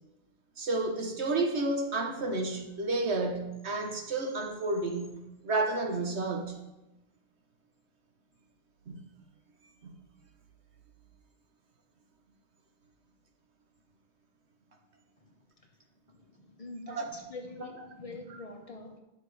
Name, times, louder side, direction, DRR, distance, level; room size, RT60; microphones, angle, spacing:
voice 1, 0.6-6.6 8.9-9.0 9.8-10.0 16.9-17.1, right 2 dB, 80° right, 1.6 m, -31 dB
voice 2, 16.1-19.0, left 2 dB, 35° left, 1.3 m, -45 dB
11.0 x 6.4 x 5.0 m
omnidirectional pair, 1.1 m